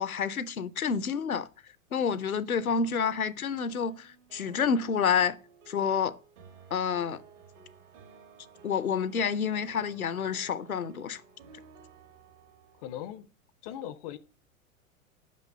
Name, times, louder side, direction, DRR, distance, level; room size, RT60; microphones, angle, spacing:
voice 1, 0.0-1.5 1.9-5.4 5.7-6.2 6.7-7.2 8.6-11.2, left 6 dB, 90° left, 0.6 m, -29 dB
sound 1, 2.8-12.9, right 5 dB, 60° right, 2.1 m, -55 dB
voice 2, 12.8-13.3 13.6-14.2, left 11 dB, 30° left, 0.4 m, -39 dB
6.0 x 5.3 x 6.6 m
figure-of-eight pair, 100°, 41 cm